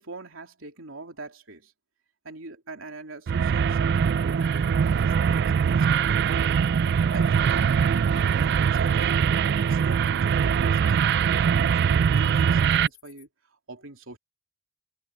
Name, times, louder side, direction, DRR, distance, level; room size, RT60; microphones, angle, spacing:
voice 1, 0.0-1.7 2.2-6.6 6.9-7.9 8.2-9.2 9.6-13.3 13.7-14.2, right 2 dB, 90° right, 3.2 m, -42 dB
sound 1, 3.3-12.9, right 7 dB, 55° right, 0.3 m, -22 dB
sound 2, 4.0-13.3, left 17 dB, 90° left, 6.0 m, -55 dB
head